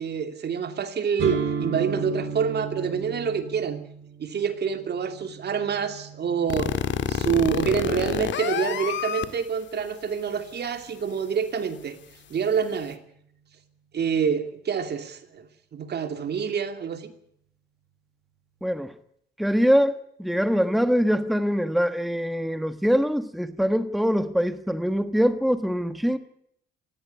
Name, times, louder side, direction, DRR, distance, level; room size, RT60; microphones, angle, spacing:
voice 1, 0.0-3.8 4.2-6.7 7.1-12.0 12.3-13.0 13.9-17.1, right 6 dB, 55° right, 2.6 m, -27 dB
sound 1, 1.2-9.0, right 6 dB, 75° right, 4.1 m, -35 dB
sound 2, 6.5-9.2, left 9 dB, 70° left, 2.0 m, -26 dB
voice 2, 18.6-18.9 19.4-26.2, equal, ahead, 1.3 m, -23 dB
17.5 x 16.5 x 9.5 m
cardioid pair, 90°, 20 cm